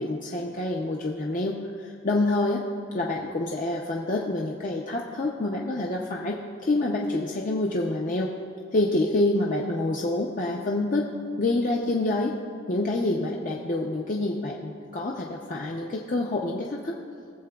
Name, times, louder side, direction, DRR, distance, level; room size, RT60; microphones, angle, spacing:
voice 1, 0.0-2.6 2.9-8.3 8.7-11.1 11.4-12.3 12.7-17.0, left 2 dB, 40° left, -1 dB, 0.6 m, -27 dB
20.5 x 7.5 x 2.3 m, 2.4 s
head